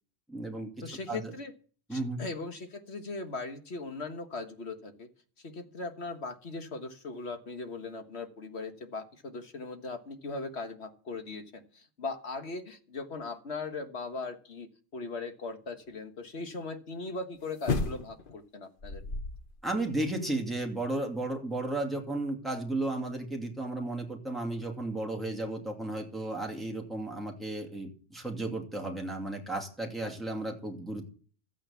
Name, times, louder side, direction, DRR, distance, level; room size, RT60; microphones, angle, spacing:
voice 1, 0.3-1.3 1.9-2.2 19.6-31.1, right 2 dB, ahead, 1 dB, 2.5 m, -34 dB
voice 2, 0.8-1.5 1.9-5.1 5.4-19.2, left 3 dB, 70° left, 7 dB, 1.6 m, -39 dB
sound 1, 17.6-18.3 18.8-19.6 19.9-20.0, left 3 dB, 50° left, 1.2 m, -32 dB
14.0 x 9.1 x 7.1 m, 0.42 s
omnidirectional pair, 1.2 m